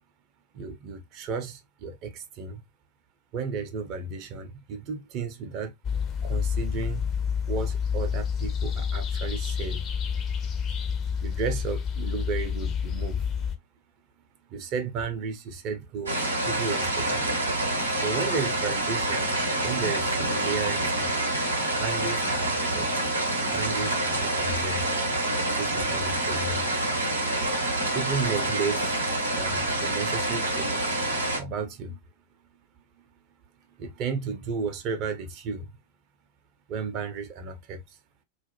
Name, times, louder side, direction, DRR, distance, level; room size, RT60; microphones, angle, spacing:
voice 1, 0.5-2.6 3.3-5.7 6.2-7.1 7.5-9.9 11.2-13.5 14.5-17.3 18.0-21.1 21.8-22.9 23.5-24.9 25.6-26.6 27.9-29.0 29.3-30.9 31.4-32.0 33.8-35.7 36.7-37.8, right 5 dB, 40° right, 0.5 m, -33 dB
sound 1, 5.8-13.6, left 7 dB, 30° left, 0.5 m, -29 dB
sound 2, 16.1-31.4, right 1 dB, 80° right, 0.7 m, -27 dB
2.3 x 2.0 x 2.9 m
figure-of-eight pair, 90°, 0 cm